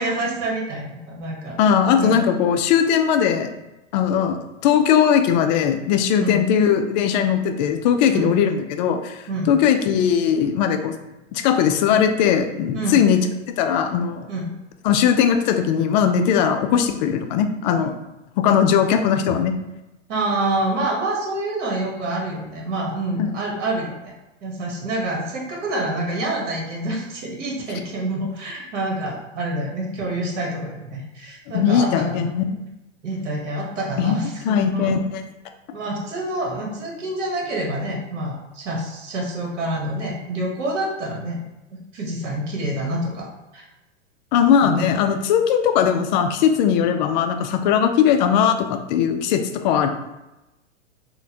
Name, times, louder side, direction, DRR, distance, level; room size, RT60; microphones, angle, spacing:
voice 1, 0.0-1.6 2.0-2.3 6.2-6.4 8.1-8.3 9.3-9.5 12.7-13.0 14.3-14.5 19.3-19.4 20.1-24.1 24.4-32.3 33.0-35.0 35.7-41.4 41.9-43.3 43.5-43.6 44.6-44.8, right 1 dB, 65° right, -1 dB, 1.2 m, -27 dB
voice 2, 1.6-3.5 3.9-4.4 4.6-9.2 9.5-10.9 11.3-13.2 13.6-14.3 14.8-17.9 18.4-19.6 23.2-23.3 31.5-32.6 34.0-34.2 34.4-35.2 44.3-49.9, left 8 dB, 40° left, 6 dB, 0.4 m, -19 dB
4.0 x 2.2 x 2.7 m, 0.98 s
hypercardioid pair, 105°, 38 cm